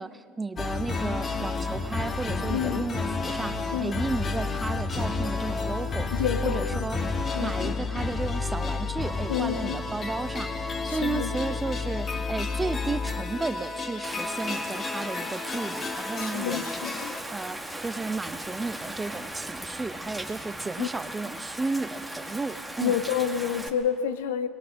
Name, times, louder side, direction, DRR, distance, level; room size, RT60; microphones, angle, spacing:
voice 1, 0.0-6.1 6.4-7.0 7.4-10.5 10.8-22.9, right 3 dB, 20° right, 12 dB, 1.0 m, -33 dB
sound 1, 0.6-17.2, left 3 dB, 35° left, 1.8 m, -31 dB
voice 2, 2.5-2.8 3.7-4.0 6.1-6.9 7.3-7.7 9.3-9.8 10.9-11.3 16.2-17.2 20.8-20.9 22.8-24.5, left 9 dB, 75° left, 10 dB, 1.0 m, -29 dB
Rain, 14.0-23.7, right 1 dB, 5° right, 2.3 m, -38 dB
21.5 x 21.0 x 6.5 m, 2.4 s
hypercardioid pair, 65°, 0 cm